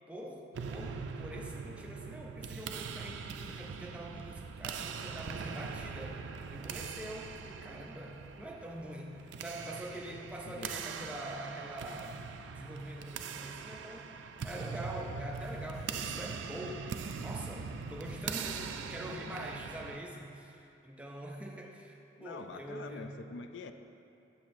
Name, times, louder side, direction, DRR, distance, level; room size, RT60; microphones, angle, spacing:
voice 1, 0.1-6.3 6.5-14.1 14.4-23.2, right 1 dB, 5° right, 0 dB, 0.4 m, -44 dB
sound 1, 0.5-20.0, right 5 dB, 75° right, 0.3 m, -42 dB
voice 2, 22.2-23.7, left 4 dB, 80° left, 8 dB, 0.3 m, -45 dB
8.7 x 6.5 x 2.5 m, 2.8 s
head